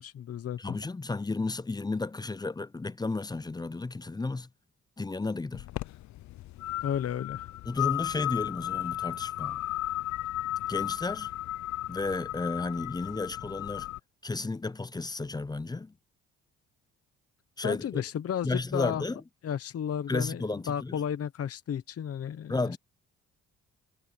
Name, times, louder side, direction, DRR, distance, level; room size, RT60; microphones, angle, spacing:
voice 1, 0.0-0.8 6.8-7.5 17.6-19.0 19.4-20.4 20.7-22.8, left 9 dB, 50° left, 1.0 m, -33 dB
voice 2, 0.6-4.5 5.0-5.6 7.7-9.6 10.7-11.3 11.9-13.9 14.2-15.9 17.6-18.0 18.4-19.2 20.1-21.0 22.5-22.8, left 3 dB, 15° left, 0.5 m, -33 dB
sound 1, 5.5-14.0, left 15 dB, 70° left, 0.6 m, -34 dB
cardioid pair, 90°, 30 cm